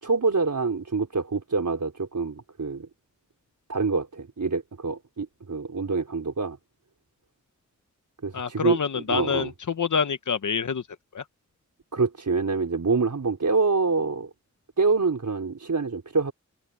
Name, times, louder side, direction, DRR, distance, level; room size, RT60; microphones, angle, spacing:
voice 1, 0.0-2.9 3.7-6.6 8.2-8.8 9.1-9.5 11.9-14.3 14.8-16.3, right 4 dB, 80° right, 4.3 m, -26 dB
voice 2, 8.3-10.9 11.1-11.2, left 6 dB, 85° left, 0.9 m, -27 dB
wide cardioid pair, 45°, 30 cm